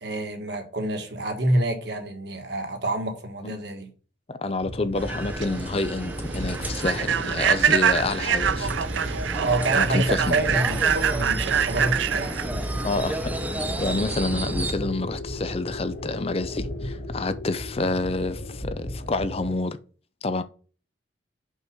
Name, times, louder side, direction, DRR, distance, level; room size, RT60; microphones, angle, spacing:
voice 1, 0.0-3.9 9.4-12.5 12.9-13.0, right 1 dB, 65° right, 1.7 m, -27 dB
voice 2, 4.3-8.7 9.7-10.4 12.8-13.4 13.8-19.8 20.2-20.4, left 2 dB, 35° left, 0.5 m, -28 dB
sound 1, 4.6-19.5, left 1 dB, 70° left, 2.1 m, -36 dB
sound 2, 4.9-14.7, right 1 dB, 10° right, 0.6 m, -32 dB
Human voice / Train, 5.1-14.0, right 8 dB, 90° right, 0.5 m, -25 dB
5.5 x 4.7 x 6.0 m
head